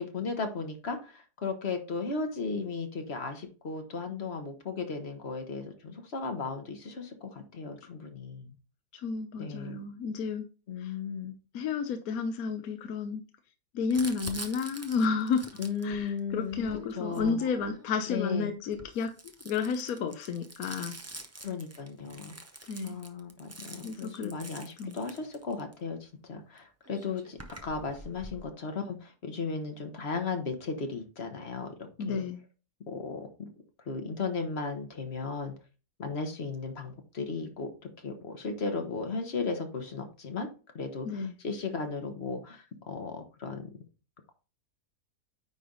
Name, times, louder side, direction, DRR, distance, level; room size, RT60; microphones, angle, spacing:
voice 1, 0.0-8.5 9.4-9.8 10.7-11.3 15.6-17.4 18.1-18.6 21.4-22.3 22.8-32.3 32.9-33.5 33.9-35.5 36.0-37.7 38.0-40.5 40.7-43.7, left 4 dB, 45° left, 1.3 m, -36 dB
voice 2, 8.9-10.4 10.8-10.9 11.5-13.2 13.7-15.5 15.8-19.1 19.4-21.0 22.7-23.0 23.8-24.4 24.8-25.0 32.0-32.4 41.0-41.3, left 5 dB, 70° left, 1.2 m, -31 dB
Crumpling crinkling, 13.9-17.9 18.6-25.7 26.6-26.7 26.8-28.4, right 2 dB, 25° right, 0.3 m, -46 dB
9.5 x 3.3 x 3.9 m
omnidirectional pair, 1.6 m